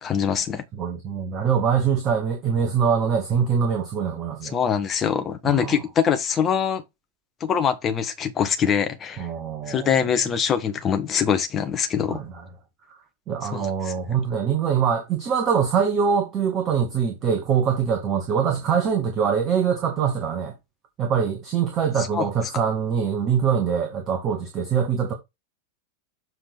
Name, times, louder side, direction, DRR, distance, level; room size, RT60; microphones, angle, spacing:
voice 1, 0.0-0.6 4.5-6.8 7.4-9.3 9.7-12.2 13.5-13.9 22.1-22.3, left 7 dB, 25° left, 1.4 m, -23 dB
voice 2, 0.7-4.6 5.4-5.9 9.2-10.3 12.1-12.4 13.3-20.5 21.0-25.1, right 7 dB, 30° right, 1.8 m, -23 dB
7.6 x 3.9 x 4.5 m
figure-of-eight pair, 90°, 0 cm